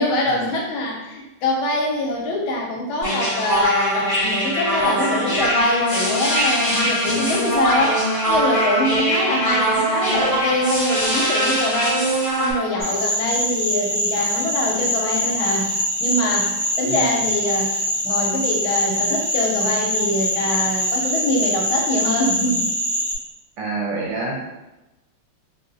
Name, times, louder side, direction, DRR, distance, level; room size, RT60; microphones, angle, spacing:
voice 1, 0.0-12.0 12.4-15.7 16.0-17.7 18.0-22.7, left 1 dB, 80° left, -1 dB, 1.4 m, -24 dB
sound 1, 3.0-12.5, equal, 10° left, 1.0 m, -21 dB
voice 2, 7.0-7.4 16.9-17.0 23.6-24.5, right 3 dB, 70° right, -3 dB, 1.2 m, -28 dB
sound 2, 12.8-23.1, equal, 45° right, 0.8 m, -23 dB
4.1 x 2.4 x 2.5 m, 1.0 s
omnidirectional pair, 2.4 m